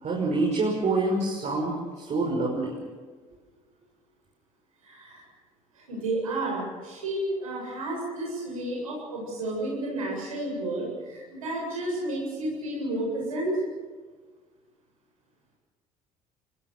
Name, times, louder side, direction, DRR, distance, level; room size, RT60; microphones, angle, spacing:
voice 1, 0.0-2.7, right 2 dB, 40° right, -1 dB, 5.9 m, -26 dB
voice 2, 4.8-5.2 5.7-13.6, right 1 dB, 85° right, -3 dB, 7.7 m, -31 dB
26.0 x 20.0 x 6.8 m, 1.5 s
figure-of-eight pair, 55°, 17 cm